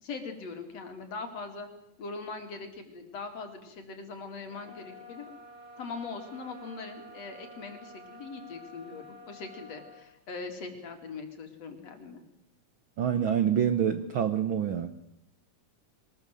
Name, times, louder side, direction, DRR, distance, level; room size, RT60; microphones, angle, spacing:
voice 1, 0.0-1.7 2.0-5.2 5.8-12.2, left 4 dB, 55° left, 5 dB, 3.6 m, -41 dB
sound 1, 4.5-10.0, equal, 50° right, 8.1 m, -50 dB
voice 2, 13.0-14.9, right 8 dB, 70° right, 11 dB, 1.2 m, -26 dB
23.5 x 20.0 x 7.8 m, 0.81 s
omnidirectional pair, 3.7 m